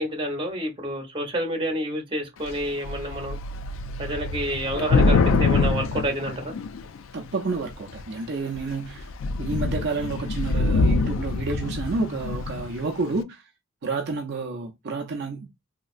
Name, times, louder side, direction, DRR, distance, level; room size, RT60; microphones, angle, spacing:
voice 1, 0.0-3.4 4.0-6.5, equal, 25° right, 1.0 m, -29 dB
Thunder / Rain, 2.5-2.6 2.8-7.0 7.7-8.1 8.6-8.7 9.0-12.7, left 3 dB, 65° left, 0.4 m, -24 dB
voice 2, 7.1-9.1 9.4-13.5 13.8-15.5, right 3 dB, 50° right, 0.5 m, -30 dB
3.1 x 2.8 x 2.4 m
head